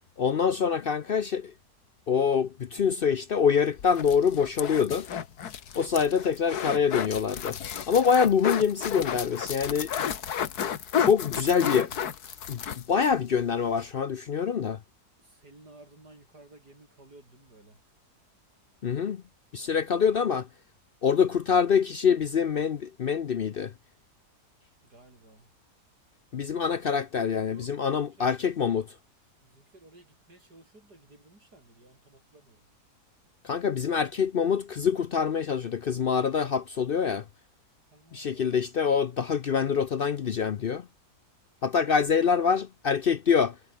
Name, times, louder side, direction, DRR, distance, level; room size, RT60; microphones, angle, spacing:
voice 1, 0.2-1.5 2.1-5.1 5.8-7.6 7.9-9.9 11.0-11.9 12.5-14.8 18.8-19.2 19.5-20.5 21.0-23.7 26.3-28.9 33.4-37.2 38.1-40.9 41.6-43.6, left 6 dB, 55° left, 0.6 m, -25 dB
sound 1, 3.8-13.1 13.5-13.6 13.8-13.9, left 8 dB, 75° left, 1.8 m, -32 dB
voice 2, 10.9-11.4 15.2-17.8 19.6-20.1 24.8-25.5 26.7-26.9 27.5-28.3 29.4-32.7 37.9-39.0 41.8-42.4, right 2 dB, 85° right, 8.2 m, -55 dB
omnidirectional pair, 1.7 m